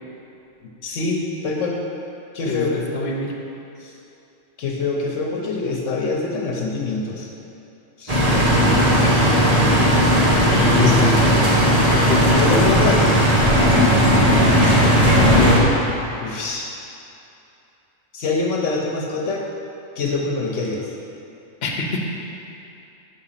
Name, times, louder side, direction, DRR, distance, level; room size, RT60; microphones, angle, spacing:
voice 1, 0.8-1.8 2.3-2.7 3.8-3.9 4.6-7.3 8.0-8.2 10.7-11.1 12.4-13.1 16.2-16.7 18.1-19.4 20.0-20.9, left 3 dB, 75° left, -1 dB, 1.1 m, -24 dB
voice 2, 2.4-3.3 8.9-9.3 10.5-11.2 12.1-12.4 13.5-14.0 21.6-22.0, left 4 dB, 55° left, -1 dB, 1.1 m, -27 dB
sound 1, 8.1-15.6, equal, 30° right, 1.2 m, -16 dB
7.0 x 5.0 x 5.7 m, 2.8 s
omnidirectional pair, 1.3 m